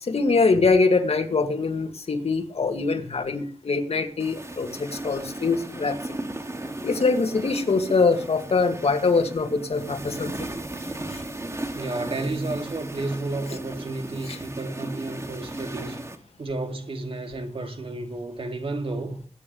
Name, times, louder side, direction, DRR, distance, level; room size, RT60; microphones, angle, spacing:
voice 1, 0.0-6.2 6.8-10.5 11.1-11.2 14.2-14.4, left 4 dB, 65° left, 2.2 m, -23 dB
sound 1, 4.2-16.2, right 1 dB, 25° right, 2.4 m, -36 dB
voice 2, 11.7-16.0 16.4-19.2, right 2 dB, 55° right, 2.4 m, -32 dB
21.5 x 9.6 x 3.3 m
wide cardioid pair, 85°, 11 cm